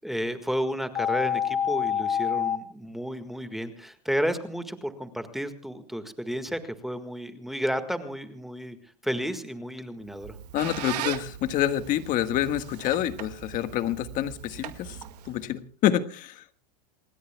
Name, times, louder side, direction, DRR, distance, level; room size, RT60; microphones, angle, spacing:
voice 1, 0.0-8.8 9.0-10.4, equal, ahead, 8 dB, 1.8 m, -32 dB
sound 1, 0.9-2.6, left 8 dB, 20° left, 1.3 m, -26 dB
Squeak, 10.1-15.5, right 12 dB, 80° right, 2.0 m, -39 dB
voice 2, 10.5-14.9 15.3-16.3, left 12 dB, 40° left, 10 dB, 1.6 m, -27 dB
28.5 x 20.5 x 2.3 m, 0.41 s
supercardioid pair, 125°, 20 cm